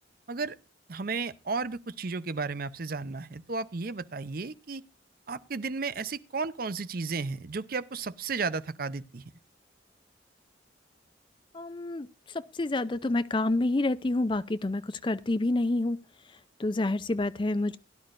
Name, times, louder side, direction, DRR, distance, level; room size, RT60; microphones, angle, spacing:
voice 1, 0.9-4.8 5.3-9.2, right 4 dB, 50° right, 0.6 m, -33 dB
voice 2, 11.5-12.1 12.6-16.0 16.6-17.8, left 2 dB, 25° left, 0.4 m, -28 dB
17.0 x 11.0 x 2.5 m
head